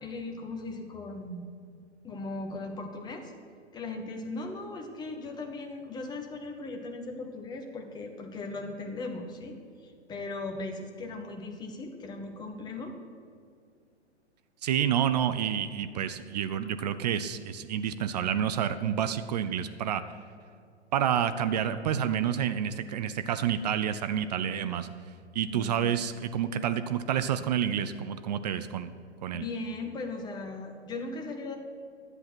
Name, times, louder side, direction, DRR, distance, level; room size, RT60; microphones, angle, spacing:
voice 1, 0.0-1.4 2.0-3.3 3.7-9.6 9.8-12.9 25.5-25.8 29.3-31.6, left 2 dB, 10° left, 4 dB, 0.9 m, -38 dB
voice 2, 14.6-20.0 20.9-24.9 25.3-28.9 29.2-29.5, right 9 dB, 40° right, 11 dB, 0.4 m, -29 dB
11.0 x 7.8 x 6.0 m, 2.3 s
figure-of-eight pair, 110°, 35 cm